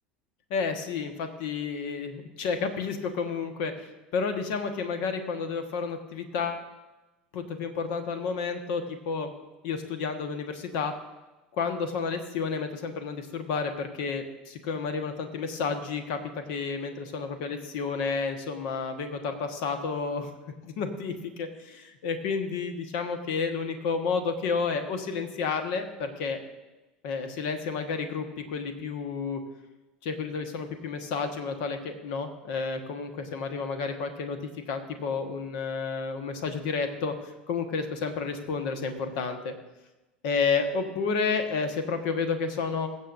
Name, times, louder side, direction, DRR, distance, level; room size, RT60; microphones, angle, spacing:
voice 1, 0.5-6.7 7.3-9.3 9.6-10.9 11.5-16.2 16.5-20.3 20.6-26.4 27.0-29.4 30.0-34.4 34.7-37.1 37.5-39.5 40.2-42.9, left 5 dB, 65° left, 6 dB, 1.3 m, -31 dB
22.0 x 7.5 x 2.6 m, 1.1 s
hypercardioid pair, 75°, 5 cm